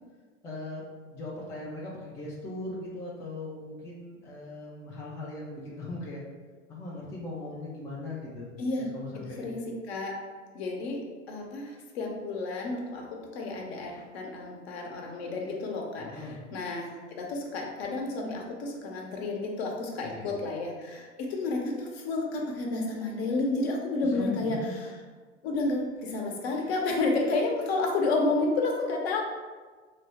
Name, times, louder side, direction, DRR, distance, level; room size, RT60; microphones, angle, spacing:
voice 1, 0.4-0.8 1.1-6.2 6.7-8.5 8.9-9.5 16.0-16.4 20.1-20.3 24.1-24.7, left 2 dB, 10° left, -5 dB, 0.3 m, -39 dB
voice 2, 9.3-9.6 9.9-10.2 10.5-11.0 11.3-13.0 13.3-25.0 25.4-29.2, left 2 dB, 55° left, 0 dB, 0.8 m, -31 dB
3.3 x 2.1 x 4.0 m, 1.4 s
figure-of-eight pair, 90°, 37 cm